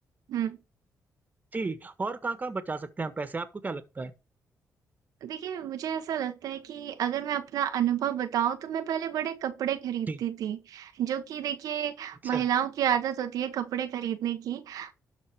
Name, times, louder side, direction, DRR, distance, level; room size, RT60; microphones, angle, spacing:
voice 1, 1.5-4.1 10.1-10.2 12.2-12.5, right 3 dB, 30° right, 1.5 m, -33 dB
voice 2, 5.2-14.9, right 10 dB, 85° right, 1.1 m, -30 dB
12.0 x 4.2 x 6.0 m
cardioid pair, 100°, 6 cm